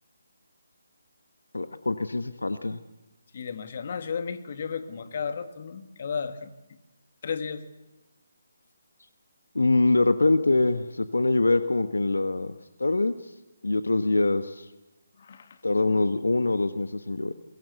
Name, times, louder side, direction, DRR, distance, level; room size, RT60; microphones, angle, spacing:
voice 1, 1.5-2.8 9.5-12.5 12.8-13.1 13.6-14.7 15.6-17.3, left 2 dB, 75° left, 11 dB, 1.2 m, -24 dB
voice 2, 3.3-6.5 7.2-7.6 15.2-15.5, left 6 dB, 45° left, 9 dB, 2.2 m, -33 dB
23.0 x 22.0 x 8.1 m, 1.0 s
figure-of-eight pair, 150°, 0 cm